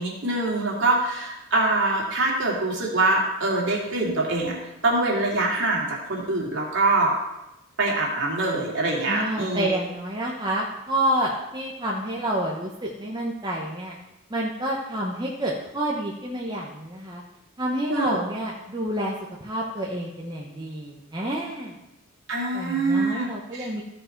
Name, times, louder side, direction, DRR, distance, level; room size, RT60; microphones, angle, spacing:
voice 1, 0.0-4.6 4.8-7.2 7.8-9.8 17.9-18.2 22.3-23.7, right 2 dB, 55° right, -3 dB, 2.6 m, -24 dB
voice 2, 9.1-14.0 14.3-17.2 17.6-19.1 19.4-21.7 22.5-23.8, right 1 dB, 20° right, -3 dB, 0.9 m, -28 dB
15.5 x 5.3 x 4.5 m, 0.93 s
head